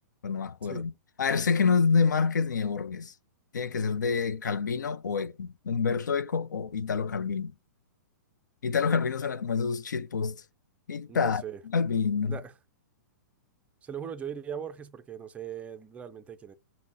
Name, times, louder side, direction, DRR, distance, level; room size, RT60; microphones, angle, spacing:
voice 1, 0.2-0.9 1.2-3.1 3.5-7.5 8.6-10.4 10.9-12.4, left 5 dB, 85° left, 0.4 m, -27 dB
voice 2, 11.1-11.6 12.3-12.5 13.8-16.5, right 8 dB, 15° right, 0.4 m, -39 dB
5.1 x 2.1 x 3.9 m
hypercardioid pair, 125°, 10 cm